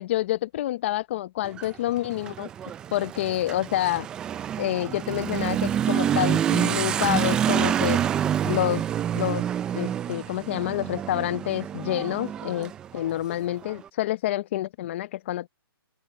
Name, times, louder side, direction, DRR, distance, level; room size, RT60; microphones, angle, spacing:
voice 1, 0.0-4.1 4.6-8.0 8.4-8.8 9.1-9.5 9.7-15.5, left 13 dB, 30° left, 0.6 m, -28 dB
Motorcycle / Accelerating revving vroom, 1.4-13.8, right 9 dB, 5° right, 0.3 m, -27 dB
open air
hypercardioid pair, 160°, 13 cm